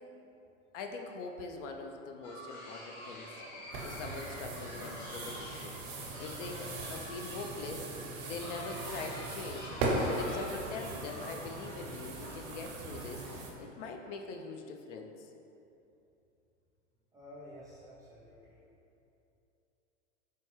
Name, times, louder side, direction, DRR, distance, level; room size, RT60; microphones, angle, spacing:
voice 1, 0.7-3.4 3.8-7.9 8.2-9.7 10.1-15.3, left 4 dB, 65° left, 3 dB, 0.5 m, -43 dB
sound 1, 2.2-13.6, left 1 dB, 45° left, 1.0 m, -47 dB
sound 2, 3.7-13.5, right 2 dB, 60° right, 0.8 m, -39 dB
voice 2, 17.1-18.6, equal, 10° right, -8 dB, 0.3 m, -51 dB
4.4 x 2.2 x 3.1 m, 2.8 s
hypercardioid pair, 100°, 39 cm